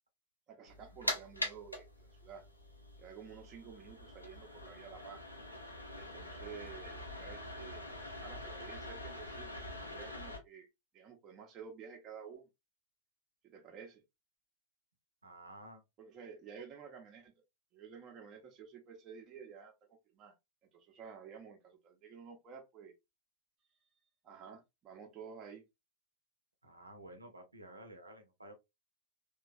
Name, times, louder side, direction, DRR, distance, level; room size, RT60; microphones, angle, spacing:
voice 1, 0.5-2.4 3.0-5.2 6.0-10.7 10.9-12.5 13.4-14.0 16.0-17.3 17.7-19.7 20.1-20.3 20.7-22.9 24.2-25.6, right 6 dB, 30° right, 0.6 m, -52 dB
sound 1, 0.7-10.4, left 1 dB, 85° left, 0.6 m, -44 dB
voice 2, 15.2-15.8 26.6-28.5, right 1 dB, 80° right, 0.7 m, -52 dB
3.0 x 2.2 x 2.4 m
figure-of-eight pair, 90°, 0 cm